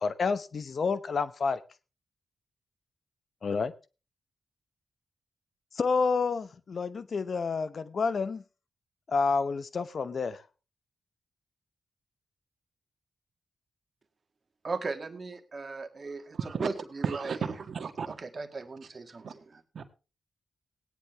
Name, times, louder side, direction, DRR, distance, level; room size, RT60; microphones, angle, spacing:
voice 1, 0.0-1.6 3.4-3.7 5.7-8.4 9.1-10.4, left 4 dB, 60° left, 0.8 m, -29 dB
voice 2, 14.6-17.4 18.1-19.6, right 4 dB, 50° right, 1.8 m, -37 dB
voice 3, 16.4-16.7 17.0-18.1 19.2-19.3 19.7-19.8, right 6 dB, 65° right, 1.6 m, -33 dB
17.0 x 9.9 x 3.5 m
supercardioid pair, 45°, 0 cm